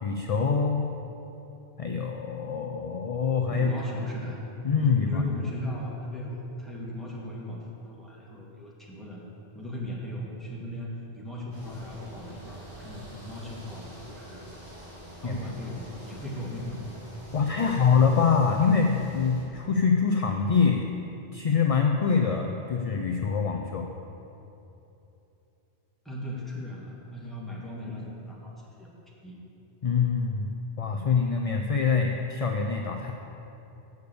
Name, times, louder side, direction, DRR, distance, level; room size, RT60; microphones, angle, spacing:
voice 1, 0.0-0.9 1.8-3.7 4.6-5.2 15.2-15.4 17.3-20.9 21.3-23.9 29.8-30.5 30.8-33.1, left 5 dB, 50° left, 3 dB, 0.4 m, -24 dB
voice 2, 3.5-4.4 4.8-7.6 7.8-9.2 9.5-14.4 15.2-16.8 17.6-17.9 26.1-28.9 29.2-29.4, left 1 dB, ahead, -5 dB, 1.7 m, -37 dB
sound 1, 11.5-19.4, right 1 dB, 30° right, 2.5 m, -45 dB
8.0 x 6.8 x 6.8 m, 2.9 s
omnidirectional pair, 1.1 m